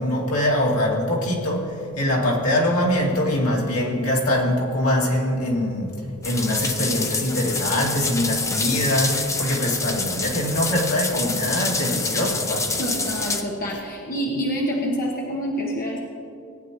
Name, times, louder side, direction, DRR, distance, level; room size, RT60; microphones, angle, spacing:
voice 1, 0.0-5.9 6.2-12.8, left 1 dB, 75° left, -3 dB, 2.3 m, -23 dB
sound 1, 6.2-13.4, left 3 dB, 15° left, 0.6 m, -27 dB
voice 2, 12.8-16.0, equal, 40° left, -2 dB, 1.1 m, -27 dB
18.0 x 10.0 x 3.0 m, 2.7 s
head